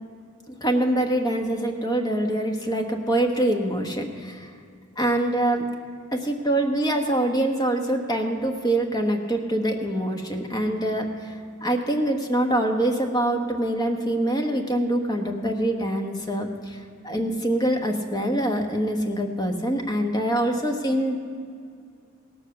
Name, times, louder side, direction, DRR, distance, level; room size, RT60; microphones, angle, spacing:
voice 1, 0.5-4.5 5.0-5.6 6.1-21.2, right 1 dB, 20° left, 3 dB, 1.2 m, -25 dB
17.0 x 7.4 x 6.8 m, 2.3 s
head